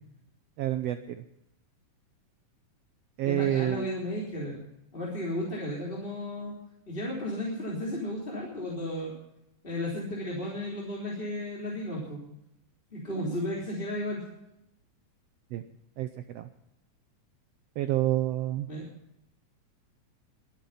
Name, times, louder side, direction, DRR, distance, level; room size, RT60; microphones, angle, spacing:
voice 1, 0.6-1.2 3.2-3.9 15.5-15.6 16.0-16.1 16.3-16.5 17.8-18.7, right 14 dB, 90° right, 10 dB, 1.4 m, -28 dB
voice 2, 3.2-6.5 6.9-9.1 9.6-12.2 12.9-14.2 18.7-18.9, left 1 dB, 15° left, -4 dB, 3.4 m, -34 dB
23.0 x 9.2 x 5.6 m, 0.81 s
omnidirectional pair, 3.8 m